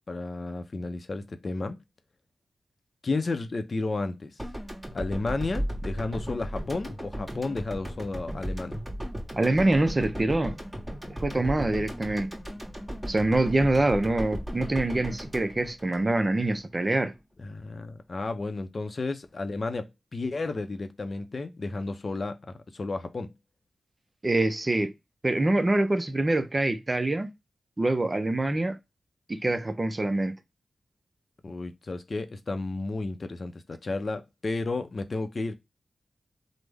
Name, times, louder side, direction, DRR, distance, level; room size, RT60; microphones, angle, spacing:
voice 1, 0.1-1.8 3.0-4.4 4.9-8.8 17.4-22.4 22.7-23.3 31.4-35.5, left 3 dB, 50° left, 0.5 m, -32 dB
sound 1, 4.4-16.6, equal, 15° right, 1.6 m, -36 dB
voice 2, 9.4-10.6 11.1-12.3 13.1-17.1 24.2-24.9 25.2-27.3 27.8-28.8 29.3-30.4, right 2 dB, 30° right, 0.5 m, -25 dB
3.3 x 2.1 x 3.3 m
cardioid pair, 55°, 0 cm